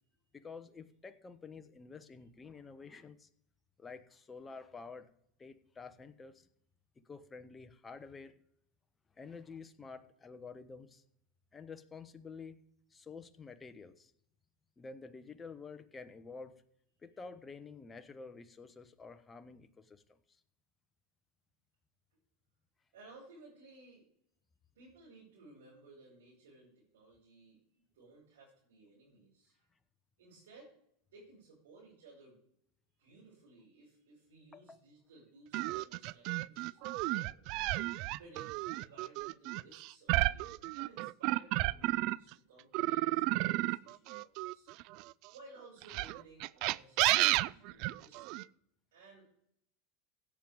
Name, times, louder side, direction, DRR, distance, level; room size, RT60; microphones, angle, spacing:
voice 1, 0.3-3.3 3.8-5.1 5.4-6.5 7.0-8.4 9.2-11.0 11.5-12.6 12.9-14.1 14.8-16.6 17.0-20.4 34.5-34.8, left 4 dB, 20° left, 10 dB, 1.1 m, -50 dB
voice 2, 22.9-24.1 24.7-29.7 30.2-30.7 31.1-32.4 33.0-37.4 38.2-44.7 45.3-48.2 48.9-49.3, right 3 dB, 80° right, -7 dB, 5.6 m, -58 dB
sound 1, 35.5-42.3 42.7-45.1 45.8-48.4, right 19 dB, 55° right, 0.3 m, -32 dB
16.5 x 7.6 x 3.6 m, 0.72 s
hypercardioid pair, 95°, 0 cm